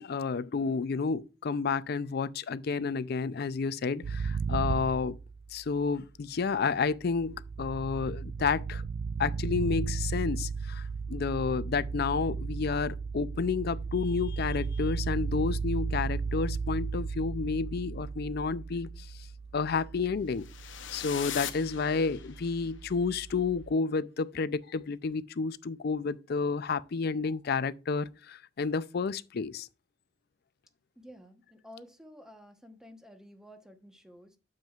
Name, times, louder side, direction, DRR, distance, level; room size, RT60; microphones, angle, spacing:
voice 1, 0.0-5.2 5.5-8.8 9.2-19.1 19.5-20.5 20.9-29.7, left 5 dB, 55° left, 0.4 m, -30 dB
sound 1, 4.0-5.8 6.8-23.7, right 5 dB, 75° right, 0.3 m, -35 dB
sound 2, 20.4-22.6, left 10 dB, 85° left, 0.8 m, -40 dB
voice 2, 31.0-34.4, equal, 5° right, 1.0 m, -52 dB
9.0 x 7.3 x 2.4 m
head